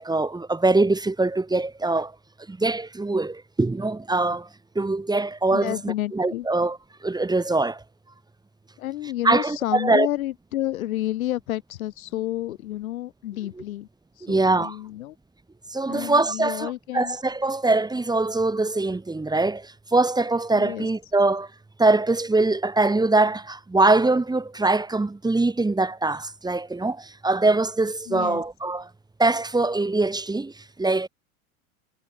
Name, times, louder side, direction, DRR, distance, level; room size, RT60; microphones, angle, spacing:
voice 1, 0.0-2.1 2.5-4.5 4.7-7.8 9.2-10.1 14.2-14.8 15.7-21.5 21.8-28.9 29.2-31.1, right 2 dB, 10° right, 2.4 m, -23 dB
voice 2, 5.5-6.5 8.8-13.9 14.2-15.2 15.9-17.2 20.5-20.9 28.1-28.4, left 14 dB, 80° left, 2.1 m, -30 dB
hypercardioid pair, 95°, 41 cm